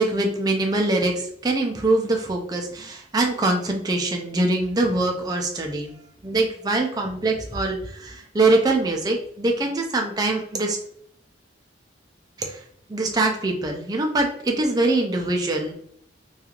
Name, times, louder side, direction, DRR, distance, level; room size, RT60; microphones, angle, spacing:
voice 1, 0.0-5.9 6.2-10.8 12.4-12.6 12.9-15.7, right 2 dB, 20° right, 2 dB, 0.4 m, -23 dB
3.0 x 2.3 x 2.4 m, 0.68 s
head